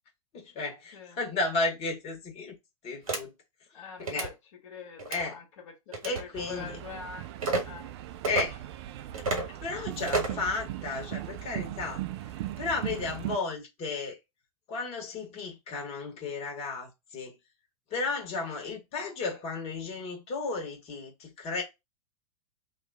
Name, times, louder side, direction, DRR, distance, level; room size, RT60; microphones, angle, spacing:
voice 1, 0.3-2.6 2.8-3.3 4.0-4.3 5.1-5.4 6.0-6.8 8.3-8.6 9.6-12.0 12.6-14.2 14.7-17.4 17.9-21.6, left 3 dB, 35° left, 1.4 m, -33 dB
sound 1, 3.1-3.2 4.0-4.3 5.0-5.2 5.9-6.2 7.4-7.6 8.2-8.4 9.1-9.5 10.1-10.4, right 3 dB, 75° right, 1.3 m, -30 dB
voice 2, 3.7-7.9, left 6 dB, 55° left, 1.2 m, -44 dB
sound 2, 6.3-13.4, right 13 dB, 50° right, 0.4 m, -38 dB
2.8 x 2.5 x 3.5 m
figure-of-eight pair, 95°, 18 cm